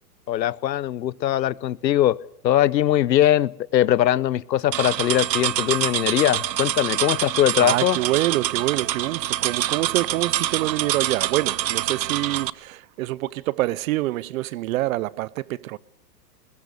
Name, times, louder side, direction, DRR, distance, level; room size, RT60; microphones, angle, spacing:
voice 1, 0.3-2.2 2.4-8.0, left 12 dB, 90° left, 0.9 m, -21 dB
sound 1, 4.7-12.5, right 12 dB, 90° right, 0.8 m, -26 dB
voice 2, 7.6-15.8, right 17 dB, 55° right, 0.8 m, -26 dB
21.0 x 19.0 x 6.8 m
hypercardioid pair, 125°, 49 cm